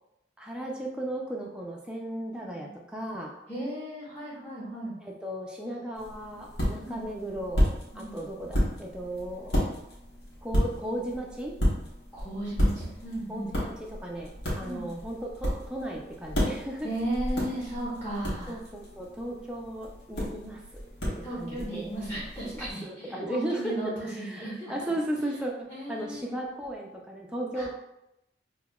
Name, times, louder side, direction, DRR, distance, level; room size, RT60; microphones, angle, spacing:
voice 1, 0.4-3.3 5.0-9.7 10.4-11.6 13.3-16.9 18.5-20.8 21.1-21.9 22.4-27.7, right 1 dB, 5° right, -2 dB, 0.4 m, -36 dB
voice 2, 2.3-2.7 3.5-4.9 6.8-7.0 7.9-8.1 12.1-13.5 14.6-14.9 16.8-18.6 21.2-24.9 25.7-26.3 27.5-27.7, right 1 dB, 10° left, -9 dB, 0.9 m, -35 dB
sound 1, 5.9-22.7, equal, 65° left, 1.1 m, -32 dB
5.6 x 2.2 x 2.2 m, 0.86 s
head